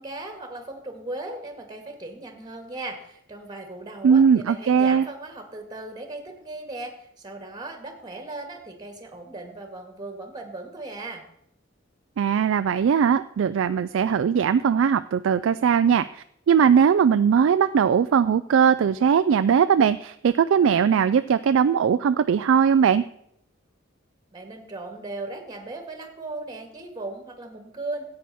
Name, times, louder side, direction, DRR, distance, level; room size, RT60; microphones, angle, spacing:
voice 1, 0.0-11.2 24.3-28.0, right 2 dB, 20° right, 4 dB, 1.9 m, -37 dB
voice 2, 4.0-5.1 12.2-23.0, right 7 dB, 85° right, 11 dB, 0.3 m, -20 dB
14.0 x 8.6 x 4.2 m, 0.74 s
head